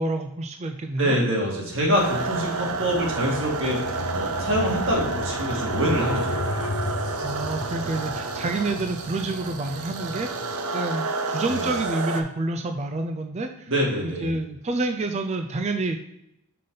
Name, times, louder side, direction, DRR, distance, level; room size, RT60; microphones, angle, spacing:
voice 1, 0.0-1.2 7.2-10.3 10.7-13.7 14.0-16.0, right 2 dB, 30° right, 5 dB, 0.4 m, -28 dB
voice 2, 1.0-6.4 11.5-11.7 13.7-14.4, equal, 60° right, -2 dB, 2.1 m, -25 dB
sound 1, 1.8-10.6, left 2 dB, 70° left, 0.6 m, -35 dB
sound 2, 1.9-12.2, right 3 dB, 85° right, 0.7 m, -30 dB
5.7 x 5.1 x 3.8 m, 0.81 s
head